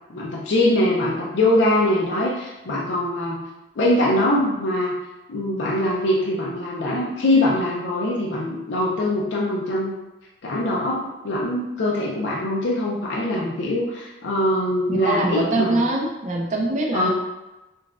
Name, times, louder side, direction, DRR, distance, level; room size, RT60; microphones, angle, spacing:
voice 1, 0.1-3.4 3.8-4.9 5.3-10.0 10.4-15.8 16.9-17.1, left 1 dB, 75° left, -4 dB, 0.5 m, -22 dB
voice 2, 14.9-17.1, right 2 dB, 40° right, 0 dB, 0.5 m, -23 dB
3.9 x 2.3 x 2.4 m, 1.0 s
head